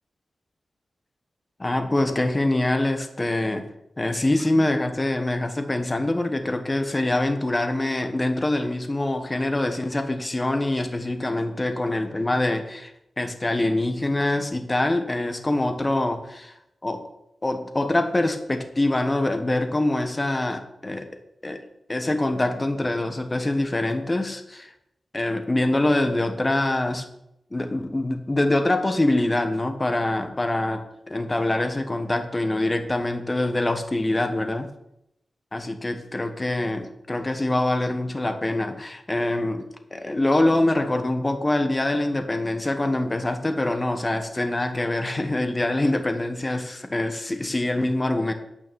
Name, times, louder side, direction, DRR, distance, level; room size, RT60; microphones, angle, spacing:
voice 1, 1.6-3.6 4.0-16.5 16.8-17.1 17.4-21.1 21.4-21.6 21.9-24.7 25.1-27.0 27.5-34.7 35.5-48.3, left 1 dB, 25° left, 7 dB, 1.3 m, -24 dB
9.0 x 5.9 x 7.0 m, 0.81 s
wide cardioid pair, 80°, 0 cm